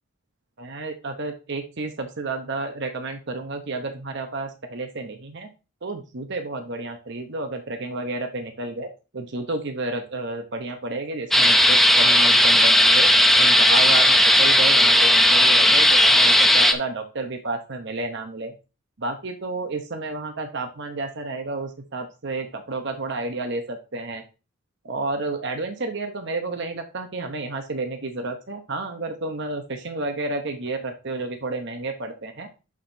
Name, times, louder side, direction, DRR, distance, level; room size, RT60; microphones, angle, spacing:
voice 1, 0.6-5.5 5.8-8.9 9.1-13.1 13.4-18.5 19.0-24.2 24.8-32.5, right 2 dB, 55° right, 5 dB, 0.9 m, -31 dB
sound 1, 11.3-16.7, left 1 dB, ahead, 0.6 m, -16 dB
11.5 x 4.9 x 2.7 m, 0.31 s
head